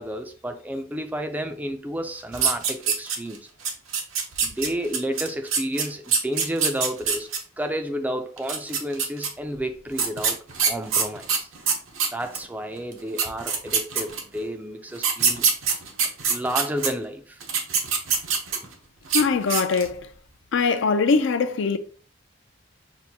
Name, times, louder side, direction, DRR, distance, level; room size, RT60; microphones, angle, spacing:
voice 1, 0.0-3.5 4.4-7.3 7.6-11.5 12.1-15.5 16.3-17.4, equal, 10° right, 0.3 m, -31 dB
sound 1, 2.3-3.4 3.6-7.4 8.4-9.3 10.0-12.4 12.9-13.0 13.2-14.4 15.0-16.9 17.4-18.7 19.0-19.2 19.5-19.9, right 6 dB, 90° right, 0.8 m, -24 dB
voice 2, 19.1-20.0 20.5-21.8, left 4 dB, 70° left, 0.4 m, -21 dB
5.8 x 2.5 x 2.7 m
head